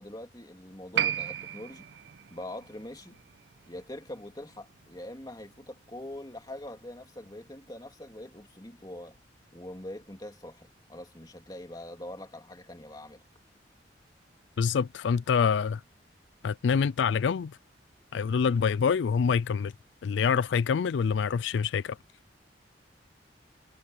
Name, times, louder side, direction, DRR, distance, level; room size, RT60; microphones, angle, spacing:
voice 1, 0.0-1.9 2.3-3.2 3.7-9.2 9.5-13.2, left 1 dB, 20° left, 2.7 m, -43 dB
Piano, 0.9-8.2, right 10 dB, 70° right, 0.5 m, -37 dB
voice 2, 14.6-15.8 16.4-17.5 18.1-19.7 20.0-22.0, left 6 dB, 75° left, 0.4 m, -26 dB
head